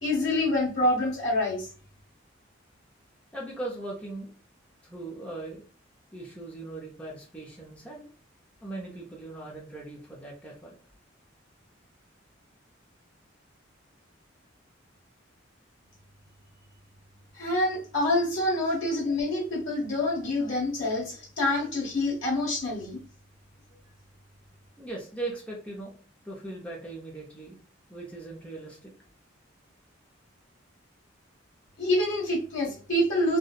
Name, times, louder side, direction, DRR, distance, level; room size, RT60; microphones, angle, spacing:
voice 1, 0.0-1.7 17.3-23.0 31.8-33.4, left 1 dB, 75° left, -4 dB, 1.3 m, -26 dB
voice 2, 3.3-4.3 4.8-5.6 6.1-8.1 8.6-10.7 18.6-18.9 24.8-25.9 26.2-27.6 27.9-28.9, right 2 dB, 5° left, -3 dB, 0.5 m, -39 dB
2.7 x 2.0 x 2.3 m, 0.38 s
head